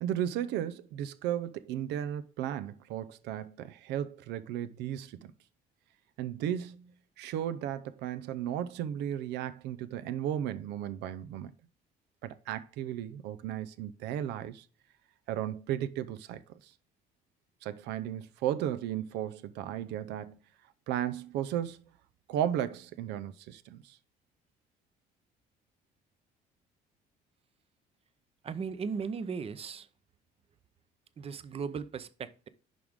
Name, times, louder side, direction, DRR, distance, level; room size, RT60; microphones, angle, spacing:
voice 1, 0.0-5.3 6.2-11.5 12.2-14.7 15.3-16.7 17.6-20.4 20.9-21.8 22.3-24.0, right 10 dB, 85° right, 0.6 m, -35 dB
voice 2, 28.4-29.9 31.2-32.5, right 5 dB, 35° right, 0.7 m, -37 dB
11.0 x 3.7 x 3.5 m
cardioid pair, 110°, 17 cm